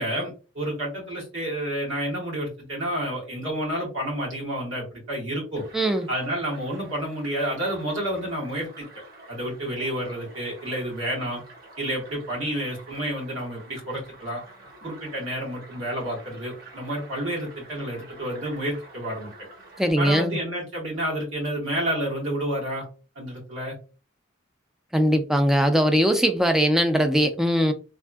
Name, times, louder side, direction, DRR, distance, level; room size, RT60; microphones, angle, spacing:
voice 1, 0.0-5.6 6.1-8.9 9.3-11.4 11.8-14.4 14.8-19.3 20.0-22.8 23.1-23.8, right 1 dB, 80° right, 1.7 m, -30 dB
sound 1, 5.5-19.9, right 2 dB, 50° right, 1.1 m, -48 dB
voice 2, 5.7-6.1 19.8-20.4 24.9-27.7, equal, ahead, 0.3 m, -21 dB
3.4 x 2.6 x 2.3 m
head